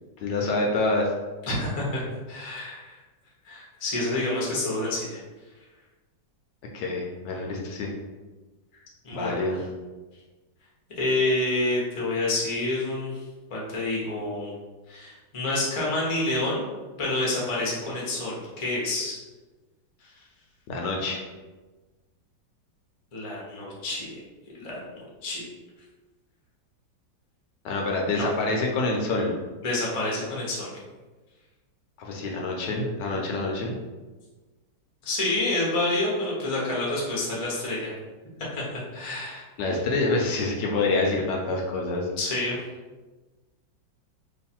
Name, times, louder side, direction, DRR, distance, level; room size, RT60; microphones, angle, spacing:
voice 1, 0.2-1.1 6.7-7.9 9.1-9.6 20.7-21.2 27.6-29.4 32.0-33.8 39.6-42.1, left 2 dB, 75° left, 0 dB, 1.2 m, -26 dB
voice 2, 1.4-3.0 3.4-5.2 9.0-9.4 11.0-13.2 13.5-14.5 14.9-16.6 17.0-19.2 23.1-24.1 24.5-25.5 28.2-28.3 29.6-30.7 35.0-37.9 38.5-38.6 38.9-39.5 42.2-42.6, left 2 dB, 35° left, -5 dB, 0.5 m, -28 dB
3.1 x 2.4 x 4.3 m, 1.2 s
omnidirectional pair, 2.0 m